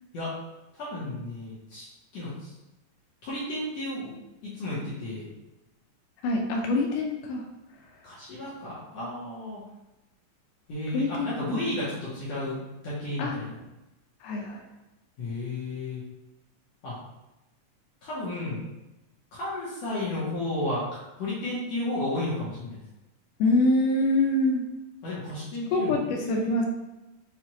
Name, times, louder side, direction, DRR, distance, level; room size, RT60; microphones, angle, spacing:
voice 1, 0.7-1.9 2.1-2.5 3.2-4.1 4.4-5.3 8.0-9.6 10.7-12.6 12.8-13.6 15.2-16.0 16.8-17.0 18.0-18.6 19.3-22.8 25.0-26.6, left 1 dB, 65° left, -9 dB, 1.8 m, -33 dB
voice 2, 6.2-7.5 10.9-11.6 13.2-13.3 14.2-14.6 23.4-24.7 25.7-26.7, left 2 dB, 80° left, 1 dB, 2.1 m, -25 dB
6.0 x 2.4 x 2.9 m, 0.98 s
omnidirectional pair, 3.9 m